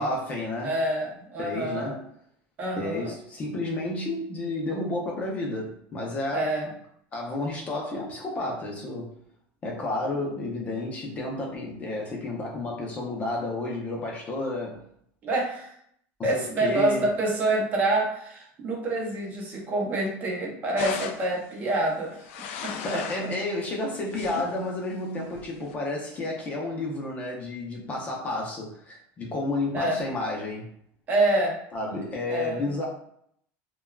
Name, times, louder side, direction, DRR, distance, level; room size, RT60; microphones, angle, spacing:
voice 1, 0.0-0.8 1.4-2.0 2.8-6.5 7.1-9.1 9.6-14.8 16.3-17.1 22.8-30.7 31.7-32.9, left 2 dB, 25° left, -1 dB, 0.6 m, -31 dB
voice 2, 0.6-2.0 2.6-3.1 6.3-6.7 15.2-15.8 16.2-22.3 22.6-23.0 29.7-30.0 31.1-31.6 32.3-32.8, right 2 dB, 25° right, -1 dB, 0.6 m, -27 dB
sound 1, 20.8-21.4 22.1-23.4 23.8-24.6 25.3-25.7, left 7 dB, 85° left, 0.3 m, -36 dB
3.4 x 2.2 x 2.2 m, 0.69 s
cardioid pair, 160°, 6 cm